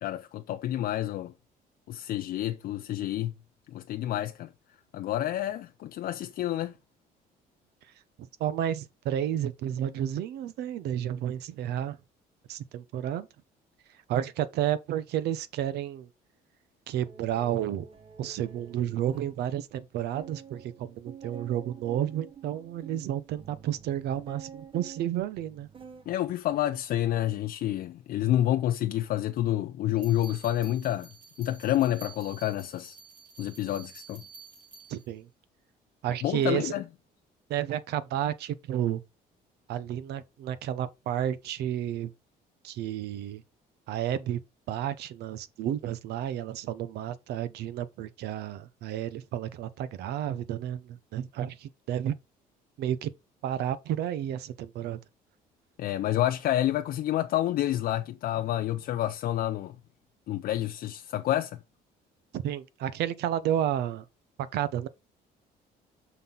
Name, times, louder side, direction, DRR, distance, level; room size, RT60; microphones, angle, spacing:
voice 1, 0.0-1.3 1.9-3.3 3.7-4.5 4.9-6.7 26.1-31.1 31.4-32.9 33.4-34.2 36.2-36.8 55.8-59.7 60.3-61.6, left 13 dB, 60° left, 0.5 m, -29 dB
voice 2, 8.2-12.0 12.5-13.3 14.1-16.1 16.9-17.9 18.2-25.7 34.9-35.3 36.0-36.8 37.5-39.0 39.7-42.1 42.6-43.4 43.9-44.4 44.7-52.1 52.8-53.1 53.4-55.0 62.3-64.1 64.4-64.9, right 11 dB, 75° right, 0.7 m, -31 dB
sound 1, 17.0-19.4 19.8-19.9 20.1-26.1 26.5-26.9, right 7 dB, 30° right, 0.8 m, -48 dB
sound 2, 30.0-35.1, right 4 dB, 60° right, 3.1 m, -50 dB
6.0 x 5.5 x 3.9 m
cardioid pair, 110°, 17 cm